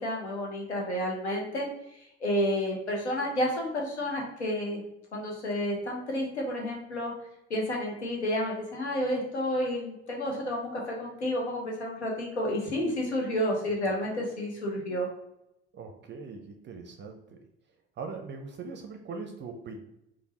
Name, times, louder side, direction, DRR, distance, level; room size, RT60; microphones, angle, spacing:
voice 1, 0.0-4.8 5.1-7.1 7.5-15.1, left 1 dB, 85° left, -1 dB, 0.7 m, -30 dB
voice 2, 15.7-17.4 18.0-19.8, right 4 dB, 35° right, 4 dB, 0.5 m, -41 dB
5.1 x 2.0 x 2.8 m, 0.82 s
figure-of-eight pair, 55°, 33 cm